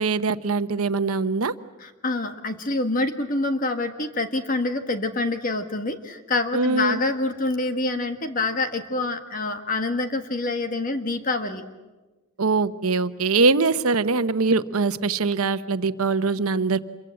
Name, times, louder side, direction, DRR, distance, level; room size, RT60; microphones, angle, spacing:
voice 1, 0.0-1.5 6.5-7.0 12.4-16.8, right 4 dB, 90° right, 12 dB, 1.0 m, -22 dB
voice 2, 1.8-11.6, left 2 dB, 40° left, 7 dB, 1.5 m, -26 dB
27.5 x 23.5 x 7.8 m, 1.2 s
head